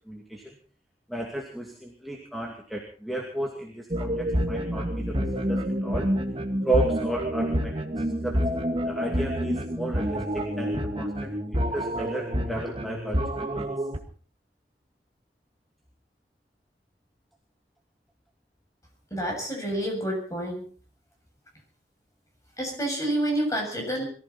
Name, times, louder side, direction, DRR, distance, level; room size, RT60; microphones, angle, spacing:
voice 1, 0.1-0.5 1.1-5.2 5.5-6.1 6.6-7.8 8.2-8.4 8.8-13.7, right 1 dB, ahead, 0 dB, 2.5 m, -33 dB
sound 1, 3.9-14.0, equal, 30° right, 1.8 m, -28 dB
voice 2, 19.1-20.6 22.6-24.1, right 1 dB, 20° left, 1 dB, 7.7 m, -28 dB
23.0 x 14.5 x 4.3 m, 0.42 s
head